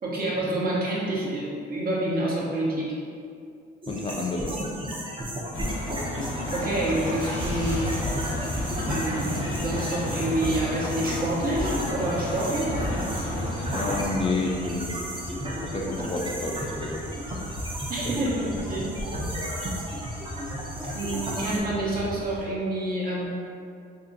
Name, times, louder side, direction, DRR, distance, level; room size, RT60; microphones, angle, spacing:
voice 1, 0.0-2.9 6.5-8.2 8.9-12.7 17.9-18.9 20.9-23.3, right 1 dB, 50° right, -6 dB, 0.9 m, -28 dB
sound 1, 3.8-21.6, equal, 25° right, 0.7 m, -33 dB
voice 2, 3.9-4.6 13.7-15.1 15.6-17.0, left 3 dB, 30° left, -1 dB, 0.3 m, -30 dB
sound 2, 5.5-14.1, left 2 dB, 80° left, 0.6 m, -33 dB
sound 3, 6.0-22.4, equal, 75° right, 1.3 m, -38 dB
2.6 x 2.5 x 3.8 m, 2.4 s
cardioid pair, 90°, 20 cm